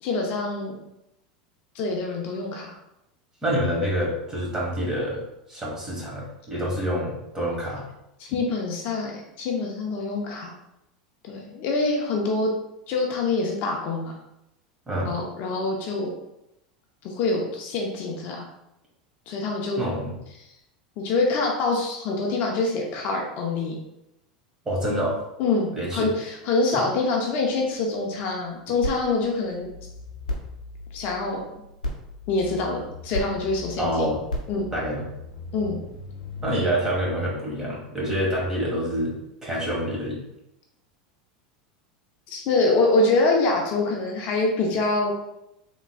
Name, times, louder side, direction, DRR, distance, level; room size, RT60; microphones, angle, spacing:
voice 1, 0.0-0.7 1.7-2.7 8.2-10.5 11.2-12.5 12.9-14.2 15.0-16.1 17.0-18.5 19.3-19.8 21.0-23.8 25.4-29.7 30.9-31.4 32.3-34.1 34.5-34.7 35.5-35.8 36.5-36.7 42.3-45.1, left 3 dB, 50° left, 0 dB, 0.7 m, -25 dB
voice 2, 3.4-5.2 5.5-7.8 14.9-15.1 19.8-20.2 24.6-25.2 25.7-26.1 33.8-34.2 34.7-35.1 36.4-39.1 39.4-40.2, equal, 15° right, -4 dB, 1.5 m, -27 dB
sound 1, 28.8-36.6, left 2 dB, 85° left, 0.9 m, -36 dB
3.5 x 3.0 x 2.2 m, 0.85 s
hypercardioid pair, 90°, 4 cm